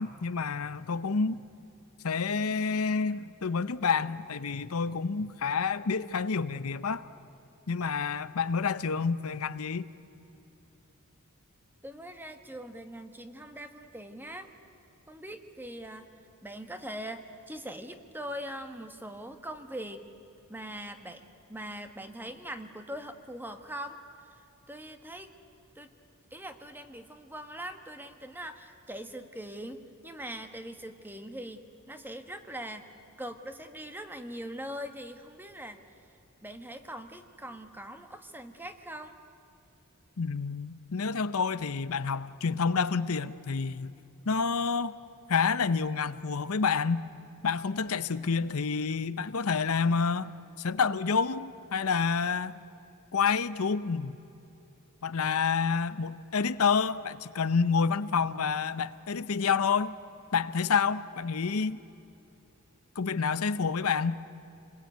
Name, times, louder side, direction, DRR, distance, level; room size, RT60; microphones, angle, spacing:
voice 1, 0.0-1.4 2.0-7.1 7.7-9.9 40.2-43.9 44.3-44.9 45.3-47.1 47.4-52.6 53.1-54.2 55.0-60.0 60.3-61.8 63.0-64.2, left 5 dB, 70° left, 14 dB, 0.7 m, -28 dB
voice 2, 11.8-14.5 15.1-16.1 16.4-20.1 20.5-21.2 21.5-24.0 24.7-25.4 25.7-25.9 26.3-32.8 33.2-35.8 36.4-39.2, right 1 dB, 10° right, 7 dB, 1.4 m, -42 dB
27.5 x 21.0 x 9.3 m, 2.9 s
head